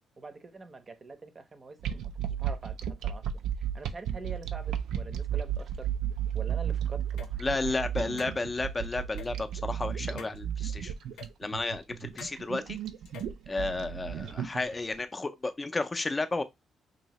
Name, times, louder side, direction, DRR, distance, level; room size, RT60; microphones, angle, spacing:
voice 1, 0.2-5.9 6.3-8.2, right 3 dB, 35° right, 0.6 m, -45 dB
sound 1, 1.8-14.9, right 9 dB, 75° right, 0.3 m, -34 dB
sound 2, 7.2-7.3 8.2-8.3 9.2-9.3 10.2-10.4 11.2-11.3 12.2-12.3 13.0-13.4, left 8 dB, 80° left, 0.5 m, -45 dB
voice 2, 7.4-10.9 11.4-12.8 13.5-16.4, left 3 dB, 25° left, 0.4 m, -32 dB
2.7 x 2.7 x 2.9 m
cardioid pair, 90°, 0 cm